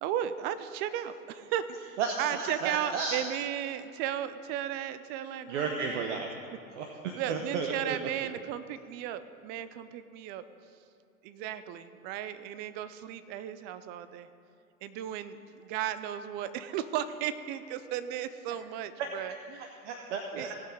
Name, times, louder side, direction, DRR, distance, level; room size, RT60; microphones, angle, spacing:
voice 1, 0.0-6.2 7.1-10.4 11.2-14.3 14.8-19.7 20.3-20.5, right 10 dB, 25° right, 13 dB, 0.4 m, -35 dB
voice 2, 2.0-3.2 5.5-6.3 6.7-8.1 19.0-19.1 19.6-20.5, right 5 dB, 55° right, 4 dB, 1.0 m, -33 dB
18.5 x 6.4 x 5.3 m, 2.5 s
figure-of-eight pair, 100°, 43 cm